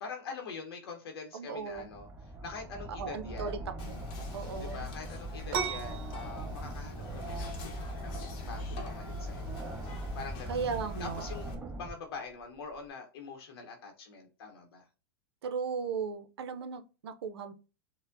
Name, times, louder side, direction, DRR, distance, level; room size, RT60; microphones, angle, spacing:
voice 1, 0.0-3.6 4.6-7.8 8.0-9.5 10.1-10.6 11.0-14.8, left 5 dB, 80° left, 0.7 m, -44 dB
voice 2, 1.3-1.9 3.0-4.0 4.3-4.8 10.5-11.3 15.4-17.5, right 5 dB, 90° right, 0.5 m, -36 dB
sound 1, 1.6-11.9, right 1 dB, 10° right, 0.7 m, -41 dB
Whispering, 3.8-11.5, left 3 dB, 40° left, 0.7 m, -45 dB
sound 2, 5.5-12.9, right 6 dB, 60° right, 0.8 m, -42 dB
4.4 x 2.1 x 2.5 m
supercardioid pair, 140°, 13 cm